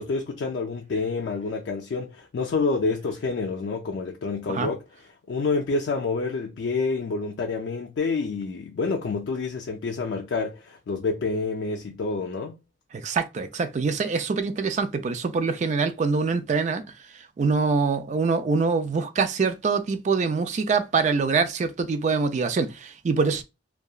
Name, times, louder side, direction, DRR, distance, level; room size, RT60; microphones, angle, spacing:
voice 1, 0.0-4.8 5.3-12.6, left 4 dB, 75° left, 0.4 m, -28 dB
voice 2, 13.0-16.8 17.4-23.4, right 4 dB, 40° right, 0.3 m, -24 dB
2.7 x 2.2 x 2.3 m
head